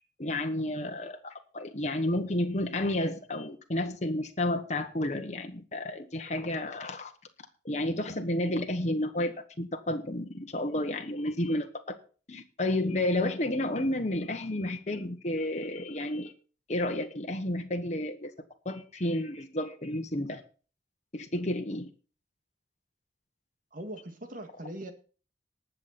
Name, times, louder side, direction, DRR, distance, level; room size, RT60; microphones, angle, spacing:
voice 1, 0.2-7.1 7.6-11.7 12.3-16.3 16.7-18.3 18.6-20.4 21.1-21.9, left 1 dB, 40° left, 4 dB, 1.3 m, -31 dB
voice 2, 23.7-24.9, right 1 dB, 50° right, 6 dB, 2.0 m, -40 dB
19.0 x 6.8 x 4.3 m, 0.38 s
head